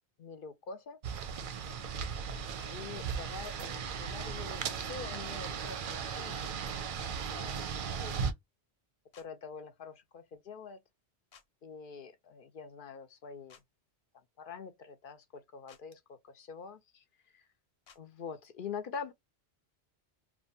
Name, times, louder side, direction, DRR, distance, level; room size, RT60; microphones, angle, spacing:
voice 1, 0.2-1.0 2.7-6.4 7.3-7.6 8.0-8.2 9.2-10.8 11.6-13.6 14.4-17.0 17.3-17.4 18.0-19.1, left 5 dB, 60° left, 0.7 m, -45 dB
sound 1, 1.0-8.3, right 6 dB, 60° right, 0.6 m, -37 dB
sound 2, 2.6-2.7 4.8-4.9 6.9-7.1 9.1-9.3 11.3-11.5 13.5-13.6 15.7-15.8 17.9-18.0, left 7 dB, 85° left, 1.0 m, -57 dB
2.6 x 2.2 x 2.6 m
omnidirectional pair, 1.1 m